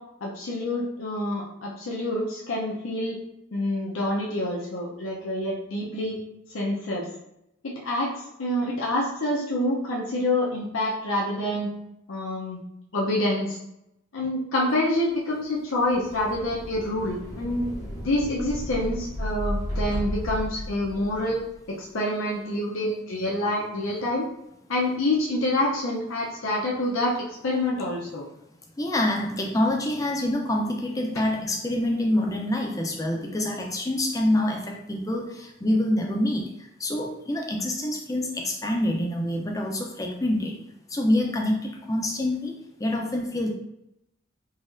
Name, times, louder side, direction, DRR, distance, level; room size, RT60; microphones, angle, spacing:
voice 1, 0.2-3.2 3.5-6.2 6.5-7.1 7.6-8.1 8.4-11.7 12.1-12.6 12.9-13.6 14.1-17.7 18.0-24.3 24.7-28.2, left 1 dB, 80° left, -4 dB, 0.6 m, -27 dB
sound 1, 15.9-21.5, equal, 40° right, 1.3 m, -33 dB
voice 2, 28.8-40.6 40.9-42.5 42.8-43.5, left 1 dB, 15° left, 1 dB, 0.4 m, -26 dB
4.1 x 2.9 x 2.5 m, 0.82 s
head